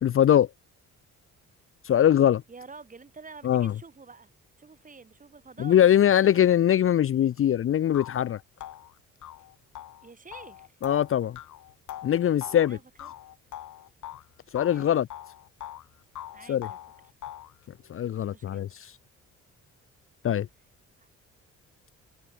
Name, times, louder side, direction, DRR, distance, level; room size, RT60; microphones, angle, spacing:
voice 1, 0.0-0.5 1.8-2.4 3.4-3.7 5.6-8.4 10.8-11.4 12.0-12.8 14.5-15.1 16.5-16.7 17.9-18.9 20.2-20.5, left 10 dB, 45° left, 0.6 m, -22 dB
voice 2, 2.5-4.3 4.6-6.4 10.0-10.8 12.7-13.1 14.6-15.0 16.3-16.8 18.2-18.7 21.0-21.1, right 4 dB, 25° right, 2.2 m, -48 dB
jaw harp, 7.4-7.5 7.9-14.3 14.6-15.9 16.2-17.6, left 12 dB, 75° left, 4.2 m, -42 dB
cardioid pair, 90°, 30 cm